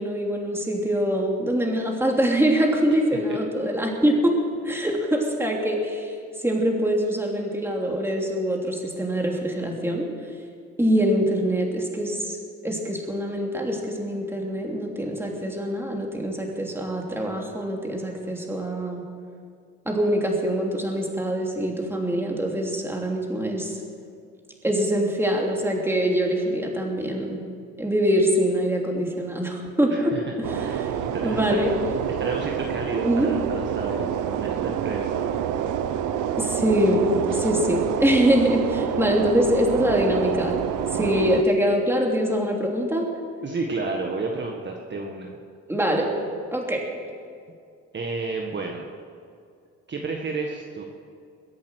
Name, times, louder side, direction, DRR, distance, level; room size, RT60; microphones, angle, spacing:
voice 1, 0.0-4.3 4.6-10.1 10.8-12.4 12.6-19.0 19.8-23.8 24.6-27.4 27.8-30.1 30.5-30.9 31.2-31.7 33.0-33.3 36.4-40.5 40.9-43.1 45.7-46.1 46.5-46.8, equal, 10° right, 0 dB, 3.1 m, -24 dB
voice 2, 29.9-30.2 30.6-31.6 32.2-35.2 41.0-41.3 43.4-45.4 47.9-48.9 49.9-50.8, right 3 dB, 35° right, 0 dB, 1.6 m, -31 dB
sound 1, 30.4-41.4, right 9 dB, 85° right, 0.8 m, -27 dB
22.5 x 8.5 x 6.4 m, 2.3 s
cardioid pair, 90°, 30 cm